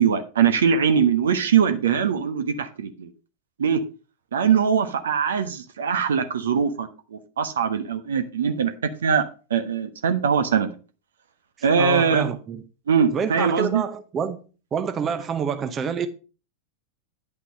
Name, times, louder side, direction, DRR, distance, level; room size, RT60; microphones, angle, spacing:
voice 1, 0.0-3.1 3.6-3.8 4.3-9.2 9.5-10.7 11.6-12.3 12.9-13.8, right 7 dB, 65° right, 1.1 m, -22 dB
voice 2, 11.8-12.6 13.1-14.4 14.7-16.1, right 7 dB, 25° right, 0.8 m, -27 dB
9.7 x 5.8 x 5.1 m
figure-of-eight pair, 90°, 0 cm